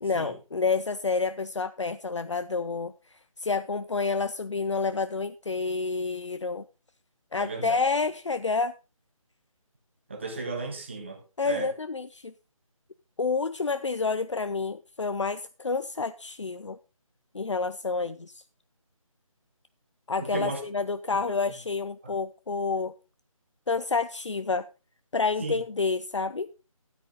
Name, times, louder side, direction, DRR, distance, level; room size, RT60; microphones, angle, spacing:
voice 1, 0.0-6.6 7.3-8.7 11.4-12.3 13.2-16.8 17.3-18.4 20.1-22.9 23.7-24.7 25.1-26.5, left 4 dB, 55° left, 13 dB, 0.6 m, -29 dB
voice 2, 7.4-7.8 10.1-11.7 20.2-20.6 25.4-25.6, right 3 dB, 20° right, 3 dB, 1.5 m, -35 dB
13.0 x 10.0 x 3.9 m, 0.32 s
figure-of-eight pair, 180°, 18 cm